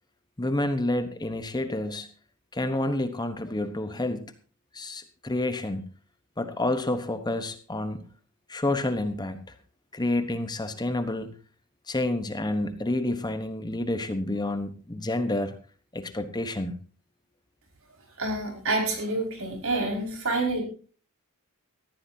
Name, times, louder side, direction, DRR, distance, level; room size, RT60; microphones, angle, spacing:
voice 1, 0.4-2.1 2.5-4.3 4.7-5.8 6.4-8.1 8.5-9.4 9.9-11.3 11.9-15.5 15.9-16.8, left 1 dB, 20° left, 9 dB, 1.1 m, -29 dB
voice 2, 18.2-20.6, right 2 dB, 65° right, 2 dB, 5.5 m, -28 dB
19.5 x 14.0 x 2.8 m, 0.38 s
head